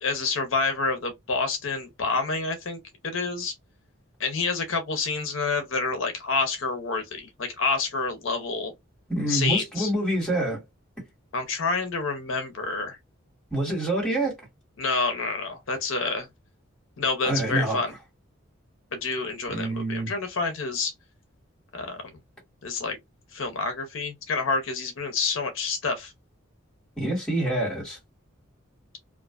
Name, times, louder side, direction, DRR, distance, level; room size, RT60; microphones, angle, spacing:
voice 1, 0.0-3.5 4.2-8.7 9.3-9.9 11.3-13.0 14.8-16.3 17.0-17.9 18.9-20.9 21.7-22.0 22.6-23.0 23.3-26.1, left 4 dB, 70° left, 0.7 m, -28 dB
voice 2, 9.1-10.6 13.5-14.3 17.2-17.8 19.5-20.1 27.0-28.0, right 1 dB, 5° left, 1.4 m, -26 dB
2.4 x 2.2 x 2.3 m
head